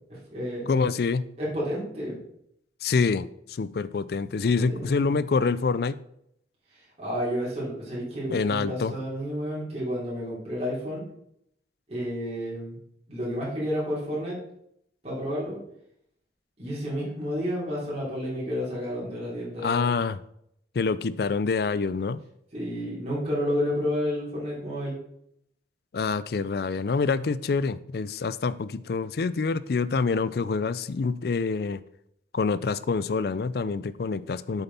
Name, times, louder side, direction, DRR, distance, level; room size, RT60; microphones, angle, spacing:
voice 1, 0.1-0.8 1.4-2.2 4.6-5.1 6.7-11.0 11.9-12.8 13.1-14.4 15.0-15.6 16.6-19.9 22.5-25.0, equal, 35° right, -7 dB, 3.8 m, -31 dB
voice 2, 0.7-1.2 2.8-6.0 8.3-8.9 19.6-20.2 20.7-22.2 25.9-31.8 32.3-34.6, left 4 dB, 55° left, 16 dB, 0.4 m, -26 dB
8.1 x 6.8 x 4.3 m, 0.73 s
head